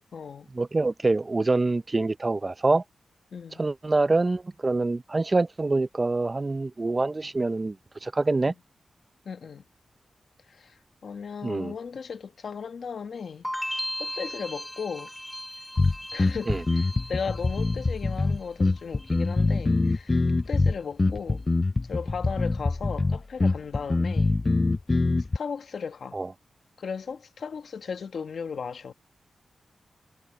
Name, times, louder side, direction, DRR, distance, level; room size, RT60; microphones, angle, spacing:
voice 1, 0.0-0.5 3.3-3.6 9.2-9.6 10.5-15.1 16.1-20.2 20.5-21.4 21.9-24.4 25.3-26.2 26.8-28.9, left 6 dB, 75° left, 1.5 m, -36 dB
voice 2, 0.5-2.8 3.6-7.8 8.0-8.5 11.4-11.7 16.5-16.6 26.1-26.3, right 3 dB, 35° right, 0.6 m, -25 dB
sound 1, 13.4-18.5 18.8-19.4, left 1 dB, 10° left, 1.9 m, -37 dB
sound 2, 15.8-25.4, left 3 dB, 35° left, 0.4 m, -24 dB
cardioid pair, 70°, 0 cm